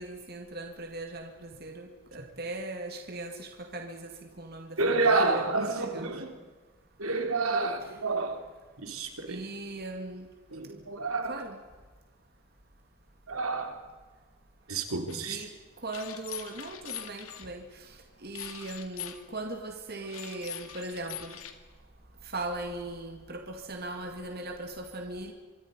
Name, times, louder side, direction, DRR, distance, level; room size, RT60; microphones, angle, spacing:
voice 1, 0.0-6.2 7.8-7.9 9.3-10.3 11.3-11.6 15.3-15.5 15.8-21.4 22.2-25.3, right 2 dB, 45° right, 4 dB, 2.2 m, -39 dB
voice 2, 4.8-6.3 7.0-8.4 8.8-9.4 10.5-11.4 13.3-13.8 14.7-15.4, right 3 dB, 90° right, 5 dB, 3.6 m, -29 dB
sound 1, 15.1-15.2 15.9-17.5 18.3-19.2 20.0-21.5, left 10 dB, 85° left, 2.1 m, -42 dB
25.5 x 23.5 x 5.3 m, 1.4 s
head